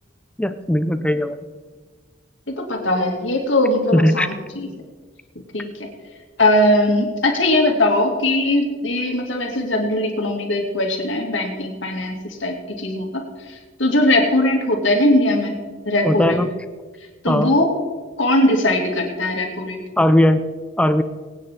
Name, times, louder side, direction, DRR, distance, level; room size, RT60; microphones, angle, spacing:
voice 1, 0.4-1.4 3.9-4.3 16.0-16.5 17.3-17.5 20.0-20.4 20.8-21.0, left 1 dB, 5° left, 10 dB, 0.5 m, -18 dB
voice 2, 2.5-4.7 5.5-5.9 6.4-15.6 15.9-16.4 17.2-17.7 18.2-19.8, left 1 dB, 80° left, 1 dB, 2.6 m, -20 dB
22.5 x 9.4 x 3.7 m, 1.4 s
head